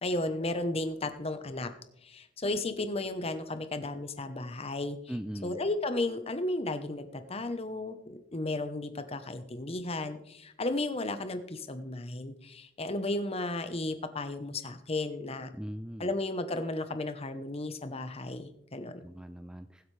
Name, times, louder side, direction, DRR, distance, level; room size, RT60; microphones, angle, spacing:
voice 1, 0.0-1.7 2.0-5.0 5.4-15.5 16.0-19.0, left 2 dB, 30° left, 9 dB, 0.9 m, -34 dB
voice 2, 5.1-5.6 15.5-16.1 19.0-19.9, equal, 5° right, 10 dB, 0.3 m, -40 dB
21.0 x 7.9 x 3.3 m, 0.77 s
head